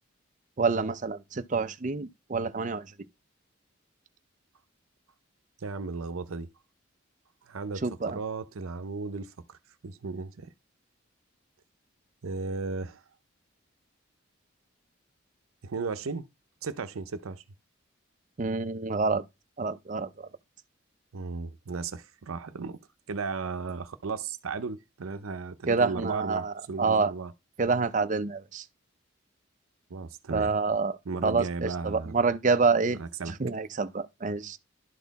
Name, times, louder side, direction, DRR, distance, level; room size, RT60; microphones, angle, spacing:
voice 1, 0.6-2.8 7.8-8.2 18.4-19.2 19.6-20.3 25.7-27.1 27.6-28.6 30.3-30.9 31.2-33.0 33.3-34.6, right 4 dB, 35° right, 0.5 m, -27 dB
voice 2, 5.6-6.5 7.4-9.6 9.8-10.5 12.2-13.0 15.6-16.3 16.6-17.4 21.1-22.8 23.1-27.3 29.9-30.5 31.1-32.1 33.0-33.4, right 4 dB, 85° right, 0.6 m, -35 dB
11.0 x 4.1 x 4.0 m
head